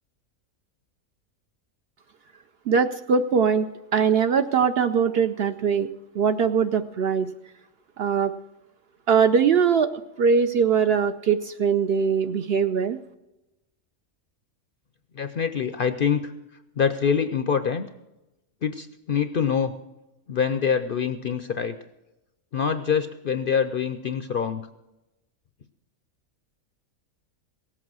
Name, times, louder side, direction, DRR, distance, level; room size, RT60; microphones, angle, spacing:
voice 1, 2.7-5.9 6.1-7.3 8.0-8.3 9.1-13.0, right 6 dB, 60° right, 9 dB, 0.7 m, -21 dB
voice 2, 15.2-16.3 16.8-17.9 18.6-19.7 20.3-21.7 22.5-24.6, left 7 dB, 60° left, 10 dB, 0.6 m, -25 dB
17.5 x 7.9 x 6.1 m, 0.98 s
omnidirectional pair, 1.4 m